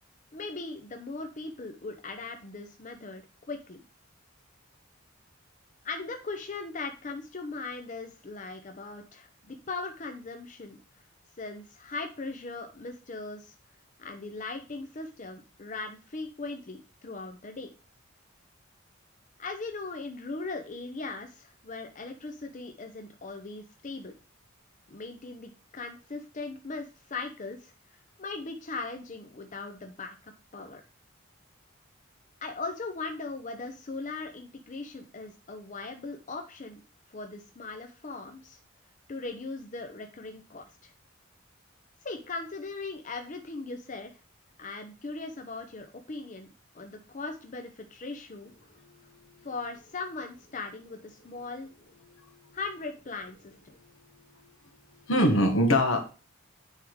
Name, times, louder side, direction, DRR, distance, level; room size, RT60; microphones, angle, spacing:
voice 1, 0.3-3.2 3.5-3.8 5.8-10.8 11.4-13.5 14.0-17.7 19.4-24.1 24.9-27.7 28.2-30.2 30.5-30.8 32.4-36.8 37.1-38.6 39.1-40.9 42.0-44.1 44.6-46.5 46.7-48.5 49.4-51.7 52.5-53.5, left 3 dB, 40° left, 5 dB, 0.7 m, -39 dB
voice 2, 48.8-49.5 52.1-52.5 55.1-56.1, equal, 75° left, 3 dB, 1.6 m, -25 dB
9.8 x 3.6 x 4.6 m, 0.35 s
head